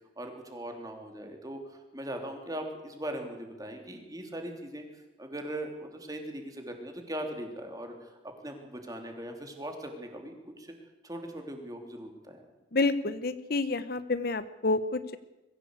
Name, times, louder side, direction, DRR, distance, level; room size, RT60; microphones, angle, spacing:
voice 1, 0.2-8.1 8.4-10.7 11.0-12.4, right 1 dB, 20° right, 3 dB, 3.3 m, -40 dB
voice 2, 12.7-15.2, left 3 dB, 55° left, 13 dB, 0.9 m, -29 dB
22.5 x 15.5 x 8.2 m, 1.0 s
head